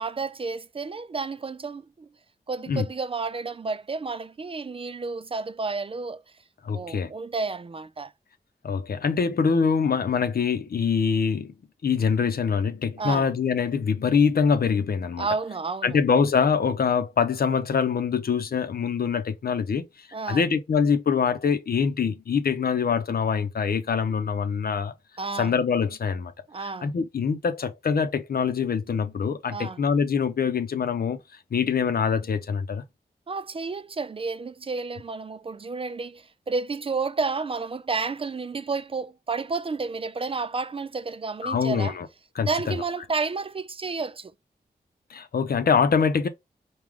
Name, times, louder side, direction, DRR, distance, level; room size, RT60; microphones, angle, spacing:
voice 1, 0.0-2.1 2.5-6.2 6.7-8.1 13.0-13.3 15.2-16.0 20.1-20.5 25.2-25.5 26.5-26.9 29.5-29.8 33.3-42.0 42.5-44.3, right 4 dB, 35° right, 0.4 m, -31 dB
voice 2, 6.6-7.1 8.6-11.5 11.8-15.3 15.8-19.9 20.3-24.9 25.4-26.3 26.6-31.2 31.5-32.8 41.4-42.1 42.4-42.7 45.1-46.3, left 6 dB, 70° left, 0.7 m, -24 dB
4.8 x 2.3 x 3.6 m
cardioid pair, 70°, 16 cm